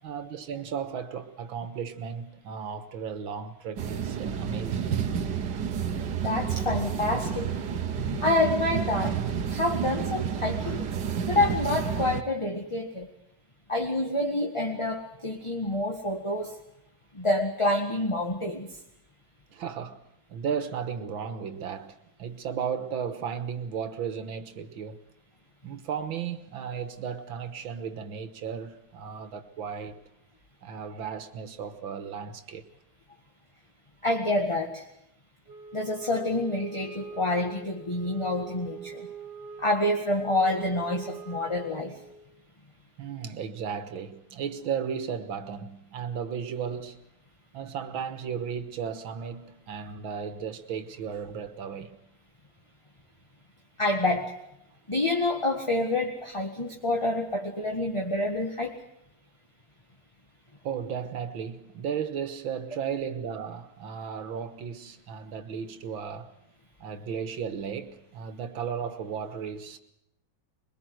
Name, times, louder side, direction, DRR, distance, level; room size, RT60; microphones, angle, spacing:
voice 1, 0.0-5.0 19.5-20.0 20.3-25.1 25.6-30.0 30.6-32.7 43.0-47.0 47.5-52.0 60.6-66.3 66.8-69.8, right 7 dB, 80° right, 2.1 m, -35 dB
sound 1, 3.8-12.2, right 7 dB, 60° right, 1.8 m, -30 dB
voice 2, 6.2-7.5 8.0-9.2 9.5-10.9 11.3-13.1 13.7-16.6 17.1-18.7 34.0-34.9 35.7-39.1 39.6-42.0 53.8-54.3 54.9-58.8, left 2 dB, 15° left, 1.7 m, -27 dB
Wind instrument woodwind instrument, 35.5-42.3, right 6 dB, 35° right, 3.1 m, -43 dB
23.0 x 21.5 x 7.9 m
omnidirectional pair, 2.1 m